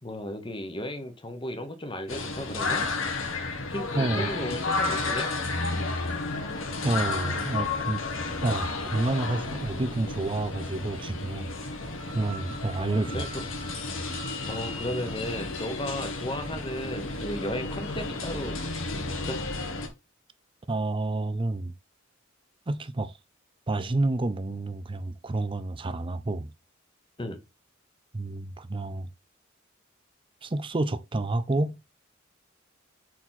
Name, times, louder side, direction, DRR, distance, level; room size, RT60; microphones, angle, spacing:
voice 1, 0.0-2.9 3.7-5.3 12.8-13.4 14.5-18.6 19.1-19.4 27.2-27.4, left 1 dB, 25° left, 1.1 m, -35 dB
sound 1, 2.1-19.9, left 3 dB, 70° left, 1.6 m, -32 dB
voice 2, 3.9-4.3 6.8-8.0 8.4-11.6 12.1-13.3 20.7-21.7 22.7-23.1 23.7-26.5 28.1-29.1 30.4-31.8, right 2 dB, 25° right, 0.5 m, -29 dB
4.7 x 4.1 x 5.8 m
head